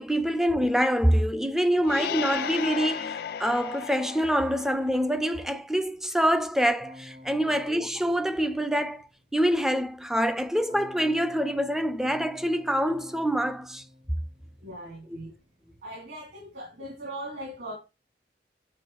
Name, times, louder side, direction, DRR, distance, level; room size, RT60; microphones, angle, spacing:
voice 1, 0.0-13.9 15.1-15.2, equal, 5° right, 0.4 m, -26 dB
sound 1, 1.8-5.4, left 9 dB, 60° left, 0.3 m, -35 dB
Keyboard (musical), 6.8-9.1 10.7-15.0, left 1 dB, 75° right, 3.4 m, -50 dB
voice 2, 14.6-15.3 15.8-17.8, equal, 60° right, 3.0 m, -40 dB
7.9 x 3.9 x 4.5 m
head